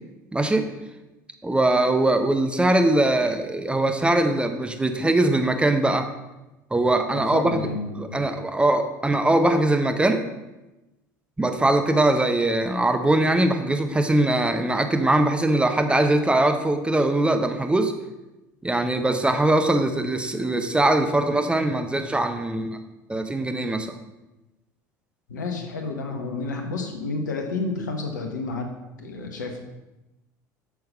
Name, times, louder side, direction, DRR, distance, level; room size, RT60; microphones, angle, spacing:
voice 1, 0.3-0.7 1.4-6.1 6.7-7.7 8.0-10.2 11.4-17.9 18.6-22.8 23.1-24.0, right 1 dB, 10° right, 7 dB, 0.9 m, -21 dB
voice 2, 7.0-8.3 25.3-28.7 29.0-29.6, left 3 dB, 75° left, 3 dB, 1.3 m, -30 dB
8.2 x 6.9 x 5.4 m, 1.0 s
figure-of-eight pair, 65°, 10 cm